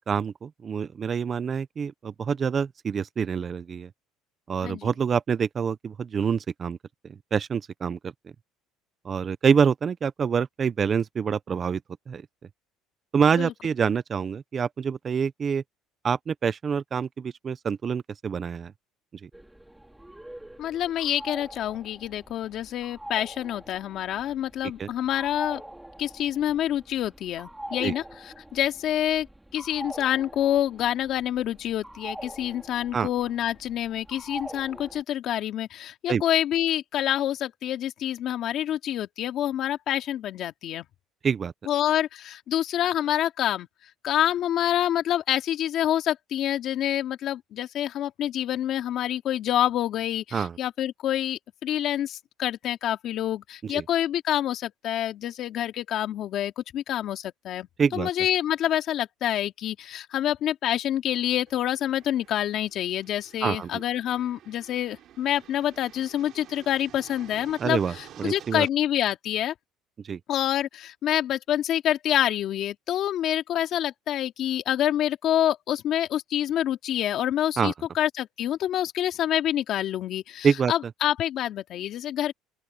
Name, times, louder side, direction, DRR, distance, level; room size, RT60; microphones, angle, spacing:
voice 1, 0.1-3.9 4.5-6.8 7.3-8.1 9.0-11.8 12.1-12.3 13.1-15.6 16.0-18.7 19.2-19.3 24.8-24.9 27.8-27.9 32.9-33.1 36.1-36.2 41.2-41.5 50.3-50.6 53.6-53.8 57.8-58.1 63.4-63.8 67.6-68.7 70.0-70.2 77.6-77.7 80.4-80.7, right 6 dB, 30° right, 0.6 m, -26 dB
sound 1, 19.3-35.0, right 1 dB, 5° right, 3.7 m, -44 dB
voice 2, 20.6-25.6 26.0-28.0 28.5-29.3 29.5-40.9 41.7-43.7 44.0-57.7 57.9-67.8 68.2-69.5 70.3-82.3, left 11 dB, 50° left, 2.6 m, -27 dB
sound 2, 61.5-68.7, right 11 dB, 50° right, 4.9 m, -50 dB
open air
cardioid pair, 145°, 0 cm